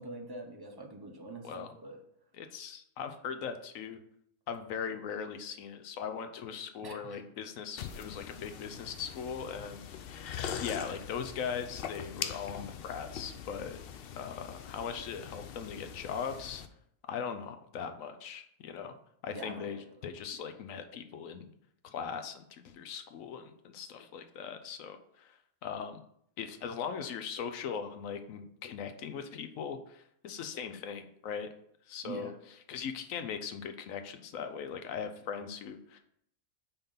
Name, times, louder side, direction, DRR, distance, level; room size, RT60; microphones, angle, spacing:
voice 1, 0.0-2.0 6.8-7.2 19.3-19.8 20.3-20.4 32.0-32.3, right 2 dB, 30° right, 2 dB, 0.4 m, -44 dB
voice 2, 2.3-4.0 4.5-9.8 10.5-13.8 14.2-16.6 17.1-18.9 19.2-21.5 21.8-26.0 26.4-31.5 31.9-32.3 32.7-36.0, left 7 dB, 70° left, 8 dB, 1.0 m, -39 dB
sound 1, 7.8-16.7, left 8 dB, 85° left, 0.5 m, -42 dB
5.7 x 3.5 x 5.5 m, 0.71 s
omnidirectional pair, 1.6 m